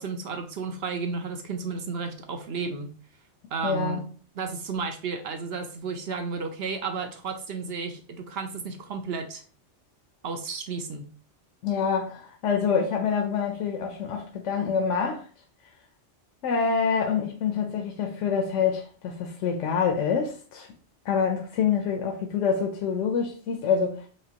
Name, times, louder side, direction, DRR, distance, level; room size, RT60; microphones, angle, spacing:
voice 1, 0.0-2.9 3.5-4.0 4.4-9.4 10.2-11.1, right 5 dB, 65° right, 0.8 m, -33 dB
voice 2, 3.6-4.1 11.6-15.3 16.4-20.7 21.1-24.1, left 6 dB, 80° left, 1.0 m, -26 dB
5.1 x 2.9 x 2.8 m
omnidirectional pair, 1.2 m